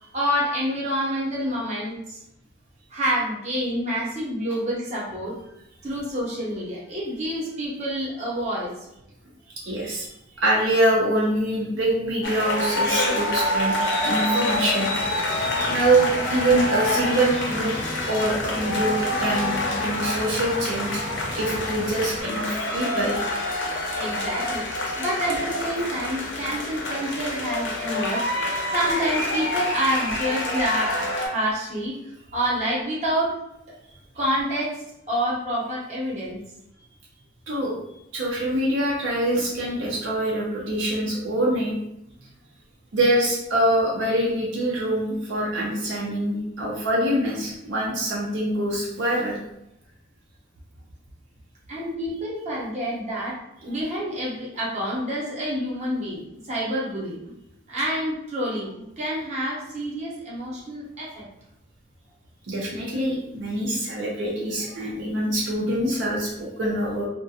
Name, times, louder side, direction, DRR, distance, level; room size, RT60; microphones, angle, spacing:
voice 1, 0.0-2.2 2.9-5.3 5.8-8.7 23.9-24.7 25.0-33.3 34.1-34.8 35.1-36.4 51.7-53.4 53.6-57.2 57.7-61.2, equal, 35° right, -6 dB, 0.8 m, -28 dB
voice 2, 9.7-10.1 10.4-13.8 14.0-14.9 15.7-17.7 18.1-20.9 21.4-23.2 37.5-37.7 38.1-41.7 42.9-49.4 62.5-67.1, right 1 dB, 75° right, -4 dB, 0.5 m, -24 dB
sound 1, 12.2-31.3, left 1 dB, 70° left, 0.6 m, -27 dB
sound 2, 14.9-22.2, left 1 dB, 20° left, 0.3 m, -35 dB
2.4 x 2.1 x 2.6 m, 0.83 s
head